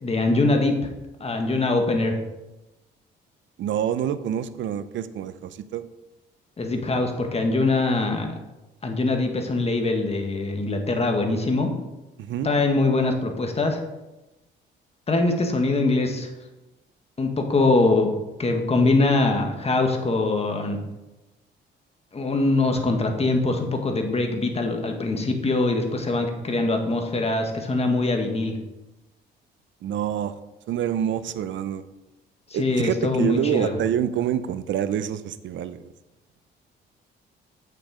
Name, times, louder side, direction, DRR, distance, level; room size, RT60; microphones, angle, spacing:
voice 1, 0.0-0.7 1.2-2.2 6.6-8.3 8.8-11.7 12.4-13.8 15.1-16.3 17.2-18.1 18.4-20.8 22.1-28.6 32.6-33.7, left 2 dB, 30° left, 3 dB, 1.8 m, -23 dB
voice 2, 3.6-5.8 12.2-12.6 29.8-30.3 30.7-31.8 32.5-35.9, right 9 dB, 70° right, 13 dB, 0.6 m, -27 dB
8.5 x 6.7 x 4.9 m, 1.0 s
cardioid pair, 90°, 20 cm